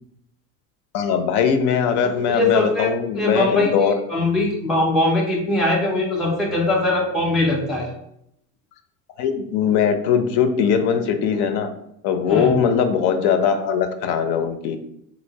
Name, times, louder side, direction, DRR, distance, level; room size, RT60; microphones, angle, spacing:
voice 1, 0.9-3.9 9.2-11.7 12.0-14.8, left 7 dB, 60° left, 7 dB, 0.6 m, -20 dB
voice 2, 2.3-7.9 12.3-12.5, left 2 dB, ahead, -3 dB, 0.4 m, -21 dB
3.1 x 2.7 x 2.7 m, 0.75 s
supercardioid pair, 100°, 42 cm